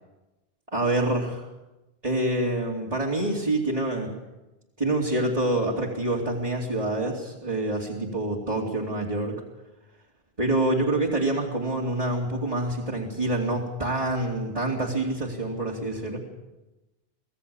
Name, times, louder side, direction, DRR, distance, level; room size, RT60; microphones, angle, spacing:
voice 1, 0.7-1.5 2.0-4.1 4.8-9.4 10.4-16.2, right 1 dB, 35° right, -3 dB, 3.0 m, -26 dB
25.0 x 17.0 x 7.1 m, 1.0 s
omnidirectional pair, 1.0 m